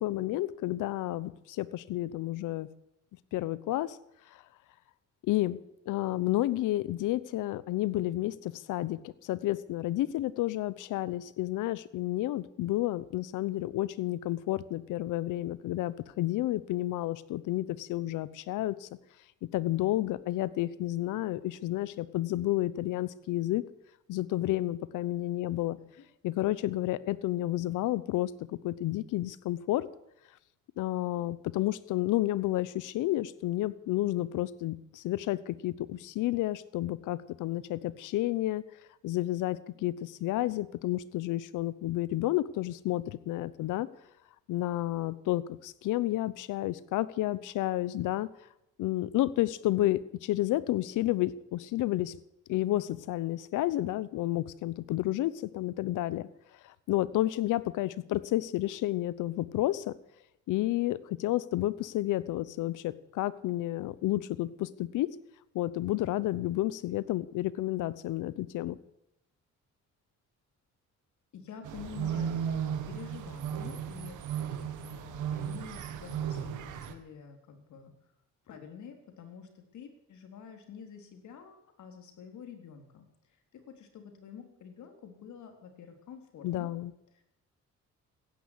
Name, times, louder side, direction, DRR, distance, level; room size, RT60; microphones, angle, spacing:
voice 1, 0.0-2.7 3.3-4.0 5.2-5.6 5.9-18.9 19.5-23.6 24.1-25.8 26.2-29.9 30.8-38.6 39.0-43.9 44.5-48.3 48.8-52.2 52.5-56.3 56.6-59.9 60.5-65.1 65.5-68.8 86.4-86.9, left 15 dB, 90° left, 18 dB, 0.9 m, -31 dB
voice 2, 71.3-74.2 74.5-77.9 78.5-83.1 83.5-86.7 87.1-87.2, left 7 dB, 75° left, 5 dB, 3.8 m, -48 dB
sound 1, 71.6-76.9, right 8 dB, 85° right, 1.9 m, -35 dB
15.5 x 11.0 x 8.4 m, 0.84 s
cardioid pair, 90°, 30 cm